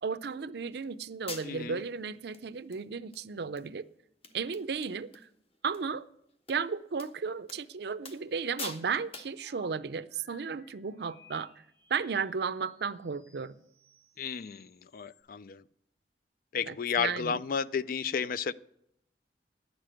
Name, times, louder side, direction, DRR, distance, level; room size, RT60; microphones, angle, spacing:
voice 1, 0.0-3.9 4.3-5.1 5.6-6.0 6.5-11.5 11.9-13.6 16.7-17.4, right 5 dB, 65° right, 0.5 m, -34 dB
sound 1, 0.7-0.8 1.3-1.8 2.3-2.4 2.7-3.2 3.6-3.7 3.9-4.0 4.2-5.3 5.5-5.8 6.5-6.6 7.0-7.1 7.5-7.6 8.0-8.3 8.6-8.9 9.1-9.4, left 3 dB, 35° left, 1.1 m, -43 dB
voice 2, 1.4-1.8 14.2-15.6 16.5-18.5, left 6 dB, 50° left, 0.4 m, -32 dB
sound 2, 9.4-15.2, left 5 dB, 75° left, 4.1 m, -62 dB
10.5 x 6.8 x 9.0 m
head